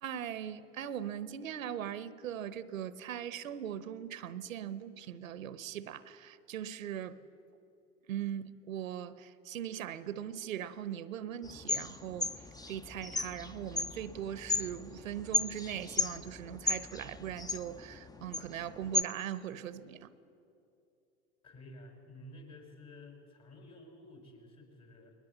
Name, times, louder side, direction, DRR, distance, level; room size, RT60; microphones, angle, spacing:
voice 1, 0.0-7.2 8.1-12.4 12.7-20.1, right 10 dB, 80° right, 17 dB, 0.9 m, -40 dB
sound 1, 11.4-19.0, left 2 dB, 10° left, 0.6 m, -35 dB
voice 2, 21.4-25.1, left 1 dB, 40° left, 3 dB, 5.8 m, -52 dB
21.0 x 19.5 x 8.0 m, 2.7 s
hypercardioid pair, 80°, 40 cm